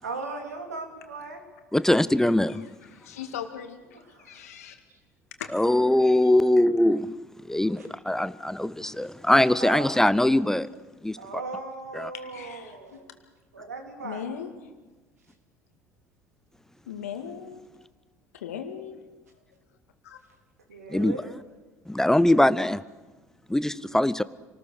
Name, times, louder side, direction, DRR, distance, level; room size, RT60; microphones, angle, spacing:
voice 1, 0.0-1.4 4.1-4.4 9.6-9.8 11.2-13.1 13.5-14.2 20.7-21.3, right 3 dB, 80° right, 3.4 m, -37 dB
voice 2, 1.7-2.7 5.5-10.7 11.0-11.2 11.9-12.1 20.9-21.2 21.9-22.8 23.5-24.2, left 1 dB, 5° left, 0.7 m, -22 dB
voice 3, 2.9-4.8 5.4-5.6 12.1-13.0 14.0-14.5 16.9-17.7 18.3-19.0 20.0-20.2, left 8 dB, 75° left, 2.2 m, -38 dB
28.0 x 19.5 x 6.5 m
figure-of-eight pair, 65°, 8 cm